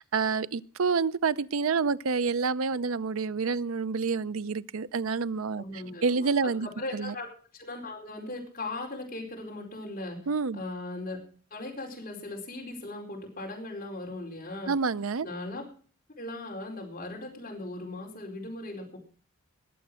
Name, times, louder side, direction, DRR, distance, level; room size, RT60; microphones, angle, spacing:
voice 1, 0.0-6.7 6.9-7.1 10.3-10.6 14.7-15.3, right 5 dB, 75° right, 16 dB, 0.6 m, -28 dB
voice 2, 5.5-7.3 7.5-10.2 10.5-11.2 11.5-14.7 15.2-15.6 16.2-19.0, left 2 dB, 40° left, 0 dB, 4.6 m, -38 dB
20.5 x 7.8 x 6.3 m, 0.42 s
head